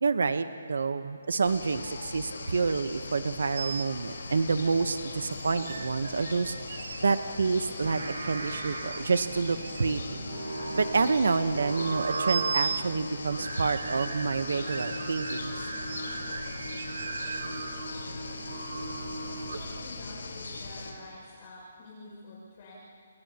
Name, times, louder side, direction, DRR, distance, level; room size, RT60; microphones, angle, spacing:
voice 1, 0.0-6.6 7.0-10.0 10.7-15.5, right 4 dB, 70° right, 10 dB, 1.0 m, -28 dB
sound 1, 1.4-20.9, left 3 dB, 85° left, 4.3 m, -40 dB
sound 2, 3.5-3.9 5.3-7.2 7.6-7.7 8.8-10.1 10.6-11.6 12.1-12.9 13.8-14.2 14.6-15.6 15.8-16.1 16.6-17.7, right 6 dB, 45° right, 0.6 m, -38 dB
Singing, 7.7-19.9, right 3 dB, 90° right, 3.3 m, -37 dB
voice 2, 19.6-22.7, left 2 dB, 30° left, -6 dB, 6.1 m, -48 dB
30.0 x 29.5 x 2.9 m, 2.3 s
hypercardioid pair, 175°, 0 cm